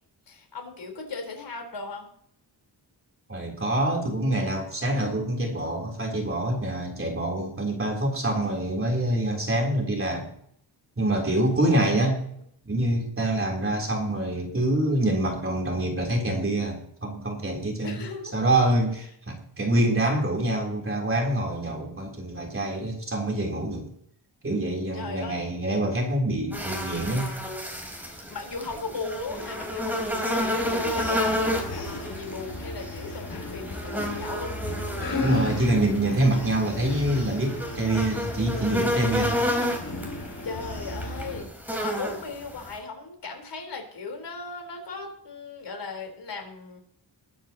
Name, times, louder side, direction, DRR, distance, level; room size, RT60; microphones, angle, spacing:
voice 1, 0.3-2.1 17.8-18.4 24.9-25.4 28.0-34.6 40.4-41.5 41.8-46.8, left 4 dB, 70° left, 3 dB, 4.2 m, -37 dB
voice 2, 3.3-10.3 11.0-12.2 12.7-18.0 18.3-23.9 24.4-27.3 35.2-39.4, right 1 dB, 30° right, 0 dB, 3.6 m, -26 dB
sound 1, 26.5-42.8, equal, 5° right, 4.1 m, -31 dB
sound 2, 30.6-41.4, left 2 dB, 55° left, 6.9 m, -35 dB
21.0 x 10.0 x 2.9 m, 0.67 s
wide cardioid pair, 115°, 44 cm